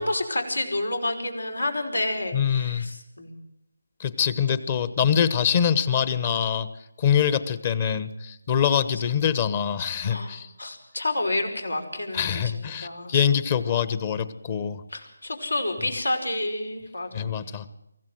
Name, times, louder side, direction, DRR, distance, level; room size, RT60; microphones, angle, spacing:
voice 1, 0.0-3.4 10.0-13.2 14.9-17.3, left 1 dB, 85° left, 5 dB, 5.3 m, -29 dB
voice 2, 2.3-2.8 4.0-6.7 7.0-10.5 12.1-14.8 17.1-17.7, left 8 dB, 30° left, 15 dB, 1.1 m, -24 dB
24.5 x 15.5 x 7.8 m, 0.86 s
figure-of-eight pair, 155°, 0 cm